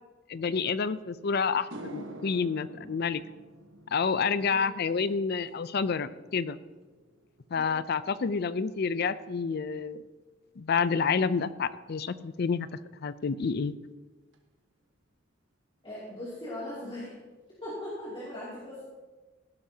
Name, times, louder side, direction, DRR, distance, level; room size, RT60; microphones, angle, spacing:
voice 1, 0.3-3.2 3.9-6.6 7.5-10.0 10.6-12.7 13.0-13.7, left 5 dB, 55° left, 15 dB, 0.5 m, -29 dB
sound 1, 1.0-1.1 1.5-10.0 10.3-10.7 14.3-14.4 16.1-16.2 16.5-16.6 16.9-17.4, right 1 dB, 75° right, 1.3 m, -50 dB
voice 2, 15.8-17.1 17.6-18.8, left 1 dB, 30° left, -8 dB, 2.7 m, -39 dB
15.5 x 11.5 x 2.8 m, 1.3 s
head